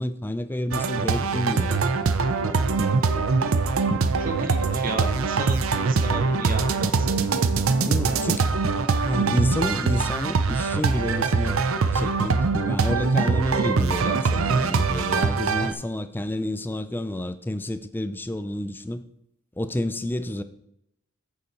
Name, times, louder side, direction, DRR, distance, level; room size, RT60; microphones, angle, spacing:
voice 1, 0.0-1.8 7.8-8.5 9.0-11.6 11.9-19.0 19.6-20.4, left 1 dB, 10° left, 0.4 m, -29 dB
sound 1, 0.7-15.7, right 4 dB, 75° right, 0.6 m, -23 dB
voice 2, 4.2-7.1, right 2 dB, 40° right, 1.2 m, -33 dB
8.2 x 6.9 x 4.4 m
head